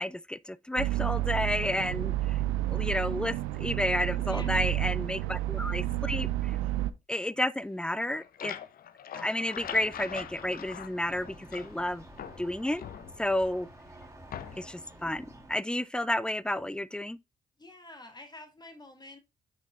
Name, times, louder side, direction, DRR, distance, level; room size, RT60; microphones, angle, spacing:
voice 1, 0.0-2.4 2.7-6.6 7.1-8.5 9.1-12.0 12.4-12.8 13.2-13.7 14.5-17.2, left 1 dB, 5° left, 0.5 m, -31 dB
sound 1, 0.8-6.9, right 14 dB, 85° right, 0.5 m, -30 dB
voice 2, 4.2-4.6 17.6-19.2, left 2 dB, 25° left, 2.9 m, -48 dB
sound 2, 7.9-11.8 12.2-13.5 14.3-14.8, left 9 dB, 60° left, 0.7 m, -43 dB
sound 3, 9.5-15.6, right 1 dB, 15° right, 2.9 m, -51 dB
7.5 x 6.3 x 2.5 m
hypercardioid pair, 40°, 18 cm